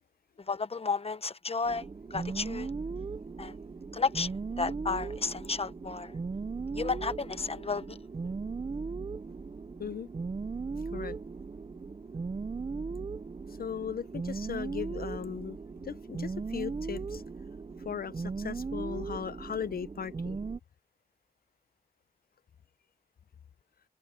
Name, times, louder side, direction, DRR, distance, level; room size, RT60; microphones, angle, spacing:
voice 1, 0.5-1.9 2.1-2.7 3.4-3.5 3.9-4.3 4.6-6.2 6.7-8.0, left 4 dB, 35° left, 1.0 m, -32 dB
sound 1, 1.6-20.6, right 4 dB, 30° right, 0.5 m, -38 dB
voice 2, 13.6-15.6 15.8-17.2 17.8-20.4, left 7 dB, 65° left, 0.6 m, -37 dB
open air
wide cardioid pair, 75°, 16 cm